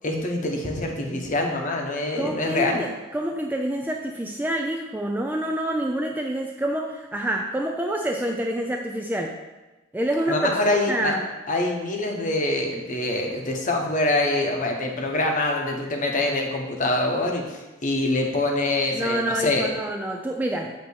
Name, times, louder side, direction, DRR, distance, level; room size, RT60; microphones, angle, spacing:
voice 1, 0.0-2.8 10.3-11.1 11.5-19.7, left 2 dB, 35° left, 1 dB, 1.0 m, -25 dB
voice 2, 2.2-9.4 9.9-11.3 18.9-20.8, right 1 dB, 10° right, 1 dB, 0.4 m, -27 dB
8.3 x 2.9 x 6.3 m, 1.1 s
head